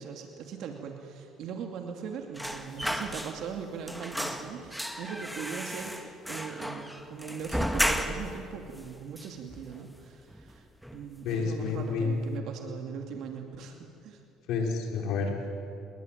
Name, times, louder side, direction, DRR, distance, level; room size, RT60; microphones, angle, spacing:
voice 1, 0.0-10.6 10.9-14.2, right 6 dB, 65° right, 3 dB, 2.6 m, -40 dB
sound 1, 2.3-3.6 3.9-8.4 8.8-8.9 9.2-10.0 10.3-10.5 10.8-11.5 11.8-12.0, equal, ahead, 1.9 m, -34 dB
voice 2, 11.2-12.1 14.5-15.5, left 5 dB, 70° left, 2 dB, 5.4 m, -29 dB
27.0 x 21.5 x 9.3 m, 2.6 s
cardioid pair, 105°, 0 cm